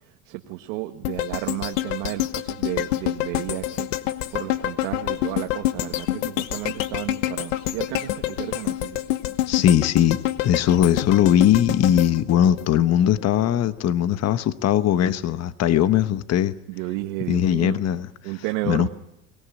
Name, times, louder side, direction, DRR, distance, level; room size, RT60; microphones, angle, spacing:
voice 1, 0.2-3.9 4.3-9.0 16.7-17.9 18.2-18.9, right 17 dB, 75° right, 4 dB, 1.5 m, -32 dB
sound 1, 1.0-13.2 13.6-13.7, left 15 dB, 85° left, 1.2 m, -27 dB
voice 2, 9.5-16.6 17.3-18.1 18.6-18.9, left 10 dB, 40° left, 12 dB, 1.1 m, -20 dB
22.5 x 18.5 x 9.3 m, 0.84 s
supercardioid pair, 105°, 38 cm